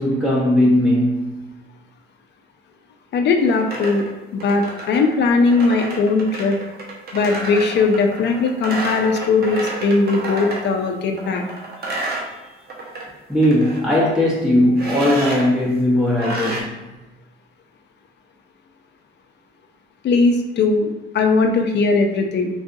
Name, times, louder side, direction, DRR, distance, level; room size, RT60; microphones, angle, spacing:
voice 1, 0.0-1.5 13.3-16.8, left 1 dB, 5° right, 0.9 m, -18 dB
voice 2, 3.1-4.0 4.3-6.6 7.1-11.4 20.0-22.5, left 3 dB, 60° left, 0.5 m, -19 dB
sound 1, 3.4-10.7 11.1-13.0 13.3-13.8 14.8-15.5 16.2-16.6, right 2 dB, 50° right, 0.8 m, -30 dB
3.9 x 2.4 x 2.6 m
cardioid pair, 90°, 20 cm